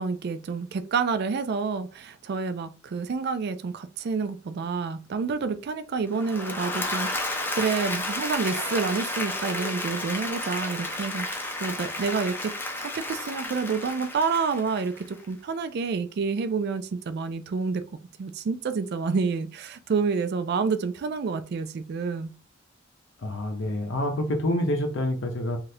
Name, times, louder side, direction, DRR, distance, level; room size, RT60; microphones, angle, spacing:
voice 1, 0.0-12.5 12.9-17.8 18.2-22.3, right 5 dB, 55° right, 0.3 m, -28 dB
Applause / Crowd, 6.1-15.3, left 2 dB, 10° left, 0.5 m, -32 dB
voice 2, 23.2-25.6, left 1 dB, 65° left, 0.6 m, -27 dB
2.7 x 2.4 x 3.2 m
head